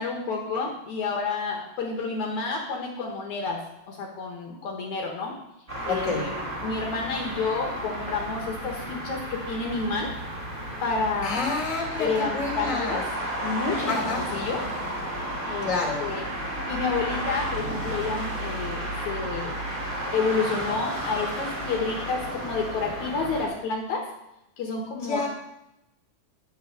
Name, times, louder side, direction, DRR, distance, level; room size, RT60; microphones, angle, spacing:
voice 1, 0.0-3.6 3.9-5.3 5.8-10.1 10.8-11.6 12.0-13.0 13.4-14.6 15.4-15.7 16.0-19.5 20.1-24.1 24.6-25.3, left 4 dB, 65° left, 1 dB, 2.7 m, -30 dB
sound 1, 5.7-23.5, right 1 dB, 15° right, 3.6 m, -32 dB
voice 2, 5.9-6.2 11.2-12.1 12.3-13.0 13.9-14.2 15.6-16.0 25.0-25.3, left 4 dB, 25° left, -3 dB, 3.2 m, -28 dB
11.5 x 8.5 x 6.7 m, 0.88 s
omnidirectional pair, 3.7 m